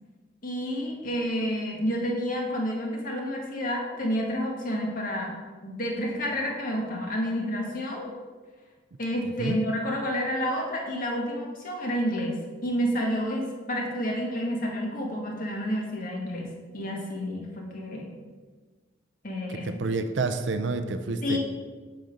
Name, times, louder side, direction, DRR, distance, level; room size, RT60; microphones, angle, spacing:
voice 1, 0.4-5.4 5.6-8.1 9.0-16.5 16.7-18.1 19.2-19.9 21.2-21.4, equal, 50° left, -1 dB, 1.7 m, -29 dB
voice 2, 19.5-21.4, right 3 dB, 85° right, 8 dB, 0.6 m, -29 dB
7.7 x 5.3 x 5.3 m, 1.4 s
head